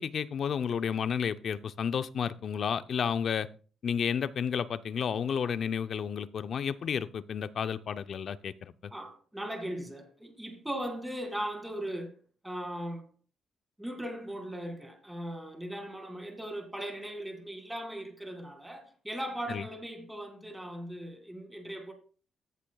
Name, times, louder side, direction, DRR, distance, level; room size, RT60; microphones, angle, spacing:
voice 1, 0.0-3.5 3.8-8.7 19.5-19.6, left 7 dB, 55° left, 0.6 m, -31 dB
voice 2, 8.9-12.2 12.4-13.1 13.8-21.9, right 1 dB, 5° right, 2.2 m, -38 dB
15.0 x 8.2 x 2.3 m
cardioid pair, 90°, 0 cm